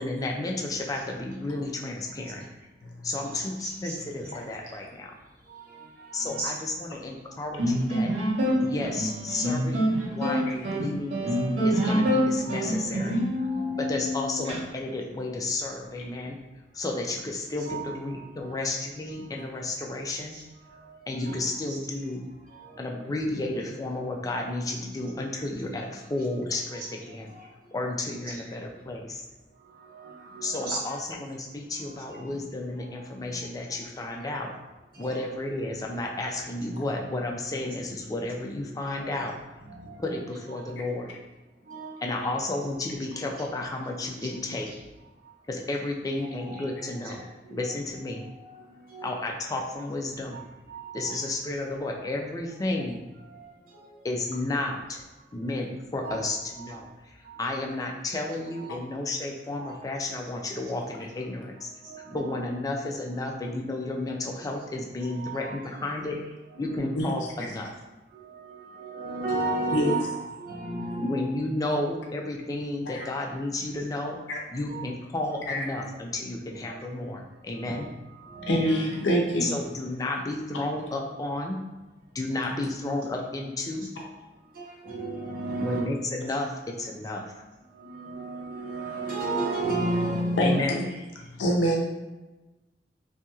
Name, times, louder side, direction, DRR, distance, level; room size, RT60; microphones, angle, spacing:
voice 1, 0.0-2.4 3.0-5.1 6.1-8.1 8.6-13.5 13.8-16.4 16.7-20.4 21.1-22.2 22.8-27.3 27.7-29.2 30.4-34.5 35.0-39.4 40.0-41.1 42.0-44.7 45.5-47.2 47.5-48.3 49.0-50.4 50.9-53.0 54.0-55.0 55.3-61.7 62.1-66.2 66.6-67.7 71.0-74.2 74.5-77.9 79.4-81.6 82.1-83.9 85.6-87.4 90.4-90.8, left 2 dB, 20° left, 0 dB, 0.3 m, -32 dB
voice 2, 3.3-4.0 5.5-6.5 8.4-8.9 11.4-11.5 12.3-12.7 13.0-13.1 13.4-14.0 17.6-18.1 20.3-20.4 20.8-20.9 21.2-21.3 21.7-21.8 22.6-23.0 25.8-25.9 26.8-26.9 27.3-27.5 28.2-28.4 29.8-31.0 32.0-32.4 33.2-33.4 34.9-35.2 38.9-39.0 39.6-40.2 41.7-42.3 43.4-43.5 44.2-44.3 46.2-47.8 48.4-48.5 48.9-49.2 50.3-50.4 50.7-51.2 52.8-52.9 53.3-53.8 56.0-56.2 56.6-56.7 57.3-57.6 59.5-59.7 61.8-62.4 65.1-65.6 66.5-66.8 67.5-67.6 68.1-71.3 74.7-74.8 75.3-75.4 76.6-76.7 77.6-78.7 79.1-79.2 84.0-84.2 84.5-85.8 87.7-90.6, right 2 dB, 55° right, -5 dB, 0.8 m, -35 dB
sound 1, 7.6-14.6, equal, 85° right, 1.0 m, -26 dB
voice 3, 69.7-70.1 70.8-70.9 72.9-73.1 74.3-74.4 75.5-75.6 78.5-79.5 90.4-90.8 91.4-91.8, equal, 85° left, -1 dB, 0.5 m, -25 dB
2.7 x 2.7 x 2.3 m, 1.1 s
head